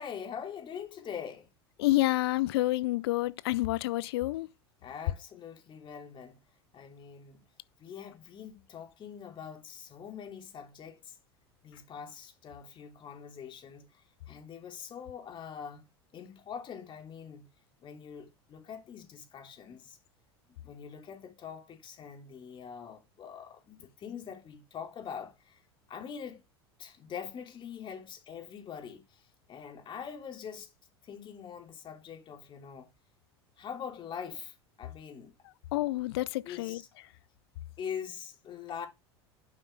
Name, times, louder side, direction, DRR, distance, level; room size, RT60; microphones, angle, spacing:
voice 1, 0.0-1.5 4.8-6.4 6.7-7.4 7.8-11.2 11.6-15.8 16.1-17.5 17.8-20.0 20.5-25.6 25.9-26.4 26.8-29.2 29.5-30.7 31.0-32.9 33.6-35.3 36.4-36.9 37.8-38.9, left 7 dB, 35° left, 2.9 m, -43 dB
voice 2, 1.8-4.5 35.7-36.8, left 18 dB, 70° left, 0.6 m, -28 dB
11.5 x 5.3 x 3.3 m
hypercardioid pair, 80°, 14 cm